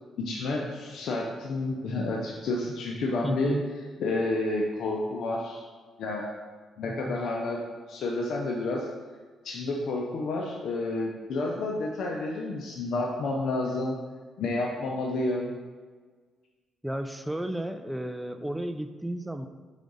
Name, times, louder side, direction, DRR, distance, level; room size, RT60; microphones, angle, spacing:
voice 1, 0.2-3.5 4.0-5.6 6.0-6.3 6.8-7.6 7.9-8.9 9.4-14.0 14.4-15.5, left 2 dB, 70° left, -1 dB, 0.6 m, -30 dB
voice 2, 3.2-3.7 6.8-7.2 16.8-19.5, right 1 dB, 5° right, 8 dB, 0.4 m, -33 dB
5.1 x 4.7 x 4.0 m, 1.5 s
cardioid pair, 90°, 0 cm